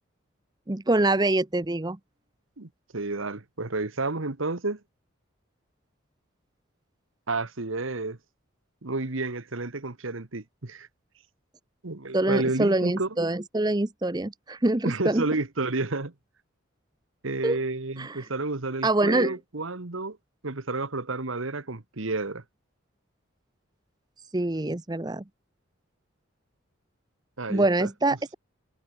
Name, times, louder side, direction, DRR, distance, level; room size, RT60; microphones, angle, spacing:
voice 1, 0.7-2.0 12.1-15.2 17.4-17.6 18.0-18.2 18.8-19.3 24.3-25.2 27.5-28.3, right 2 dB, 20° right, 0.7 m, -25 dB
voice 2, 2.6-4.8 7.3-8.2 8.8-10.9 11.8-13.1 14.8-16.1 17.2-20.2 20.4-22.4 27.4-27.9, right 3 dB, 75° right, 1.5 m, -31 dB
head